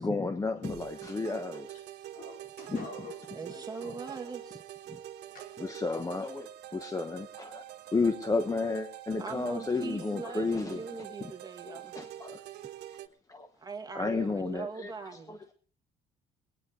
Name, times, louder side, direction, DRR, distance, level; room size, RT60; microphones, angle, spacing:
voice 1, 0.0-1.8 2.7-2.9 4.9-5.0 5.6-7.6 7.9-10.8 11.2-11.3 11.7-12.4 13.3-13.5 13.9-14.9 15.3-15.5, left 3 dB, 20° left, 1.1 m, -32 dB
sound 1, 0.6-13.1, right 13 dB, 75° right, 1.4 m, -46 dB
voice 2, 2.1-4.3 5.3-5.5, left 2 dB, 60° left, 5.0 m, -48 dB
voice 3, 3.3-4.6 9.2-12.0 13.6-15.4, right 4 dB, 25° right, 2.1 m, -41 dB
21.0 x 9.9 x 4.2 m
cardioid pair, 110°, 17 cm